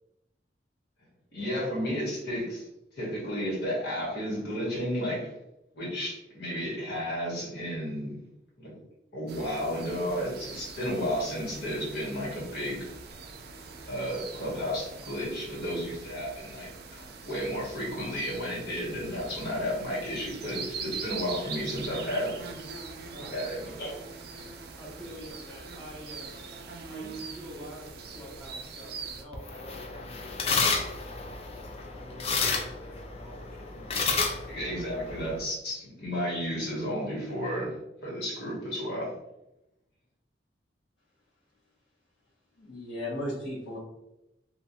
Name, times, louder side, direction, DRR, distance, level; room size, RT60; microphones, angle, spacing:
voice 1, 1.3-2.7 2.9-5.3 5.7-8.2 8.6-8.8 9.1-12.9 13.9-22.3 23.3-24.0 34.4-37.8 38.0-39.1, equal, 60° left, -5 dB, 1.1 m, -32 dB
sound 1, 9.3-29.2, right 4 dB, 60° right, 0.4 m, -42 dB
voice 2, 24.8-26.3 26.9-31.2 31.9-34.1, equal, 5° left, -6 dB, 0.7 m, -47 dB
sound 2, 29.3-35.4, left 4 dB, 35° left, 0.3 m, -31 dB
voice 3, 42.6-43.8, left 1 dB, 85° left, -9 dB, 0.9 m, -35 dB
2.8 x 2.1 x 2.7 m, 0.89 s
head